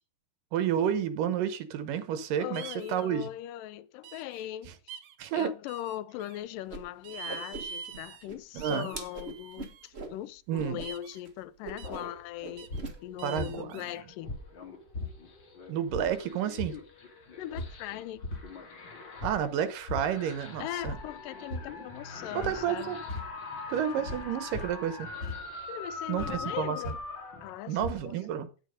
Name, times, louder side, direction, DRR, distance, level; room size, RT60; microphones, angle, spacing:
voice 1, 0.5-2.6 2.9-3.3 5.2-5.5 8.5-8.9 10.5-10.8 13.2-13.9 15.7-16.8 19.2-21.0 22.3-23.0 23.7-25.1 26.1-26.8 27.7-28.5, right 9 dB, 80° right, 2.7 m, -30 dB
voice 2, 2.4-4.7 5.3-14.3 17.4-18.3 20.6-23.0 24.0-24.1 25.7-27.0 27.4-28.2, left 13 dB, 85° left, 2.3 m, -40 dB
sound 1, 2.5-3.1 4.0-4.5 4.9-5.2 5.7-6.4 7.0-8.3 8.6-9.9 10.8-11.2 11.8-12.1 12.6-12.8 13.2-14.0, right 8 dB, 65° right, 1.8 m, -44 dB
Whoosh swoosh swish, 6.7-6.8 7.1-8.0 8.3-10.2 10.6-10.9 11.1-11.3 11.6-12.2 12.4-13.0, right 3 dB, 35° right, 1.1 m, -40 dB
sound 2, 11.8-13.9 14.2-28.1, left 3 dB, 35° left, 2.6 m, -40 dB
9.3 x 9.1 x 5.1 m
omnidirectional pair, 3.8 m